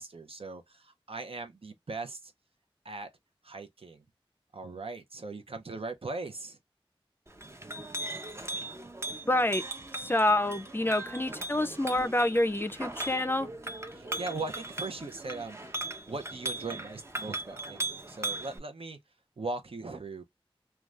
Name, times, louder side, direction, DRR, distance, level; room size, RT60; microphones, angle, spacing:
voice 1, 0.0-2.3 2.8-3.1 3.4-4.0 4.5-6.6 13.9-19.0 19.4-20.2, right 3 dB, 75° right, 0.6 m, -39 dB
Chink clink, 7.3-18.6, right 2 dB, 30° right, 0.6 m, -39 dB
voice 2, 9.2-9.6 10.0-13.5, left 1 dB, 20° left, 0.4 m, -27 dB
2.4 x 2.3 x 3.1 m
wide cardioid pair, 40°, 10 cm